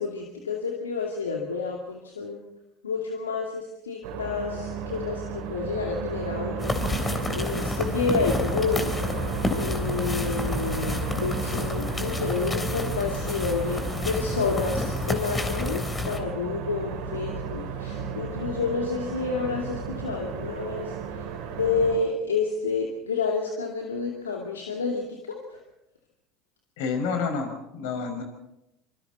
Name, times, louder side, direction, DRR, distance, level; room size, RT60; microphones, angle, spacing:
voice 1, 0.0-2.4 2.8-8.9 9.5-21.0 21.5-25.6, left 4 dB, 85° left, 1 dB, 2.4 m, -29 dB
sound 1, 4.0-22.0, right 6 dB, 65° right, 3.9 m, -34 dB
sound 2, 6.6-16.2, left 2 dB, 20° left, 3.5 m, -30 dB
voice 2, 26.8-28.2, left 5 dB, 70° left, 4 dB, 5.5 m, -29 dB
26.0 x 26.0 x 4.2 m, 0.90 s
hypercardioid pair, 70°, 0 cm